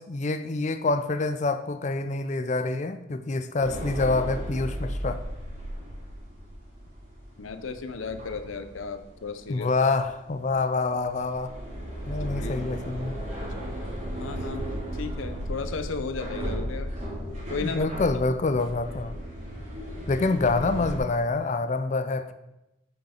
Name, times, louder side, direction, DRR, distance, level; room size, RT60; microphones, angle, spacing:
voice 1, 0.0-5.2 9.5-11.5 12.1-13.1 17.6-19.2 20.1-22.3, left 3 dB, 35° left, 11 dB, 0.4 m, -26 dB
sound 1, 3.6-21.0, equal, 35° right, 2.4 m, -35 dB
voice 2, 7.4-9.7 12.2-12.6 13.0-13.1 13.5-13.7 14.2-16.9 17.5-17.9, left 4 dB, 85° left, 10 dB, 0.6 m, -35 dB
8.0 x 5.4 x 4.3 m, 0.92 s
head